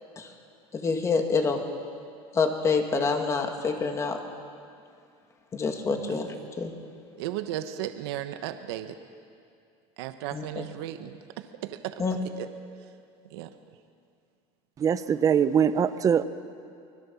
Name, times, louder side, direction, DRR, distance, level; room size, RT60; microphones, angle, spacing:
voice 1, 0.7-1.6 2.3-4.2 5.5-6.7 10.3-10.7 12.0-12.2, left 4 dB, 25° left, 4 dB, 2.3 m, -27 dB
voice 2, 7.2-9.0 10.0-12.0 12.4-12.5 13.3-13.5, right 12 dB, 85° right, 8 dB, 1.2 m, -35 dB
voice 3, 14.8-16.2, right 7 dB, 25° right, 12 dB, 0.9 m, -22 dB
25.5 x 20.5 x 7.2 m, 2.3 s
cardioid pair, 145°, 13 cm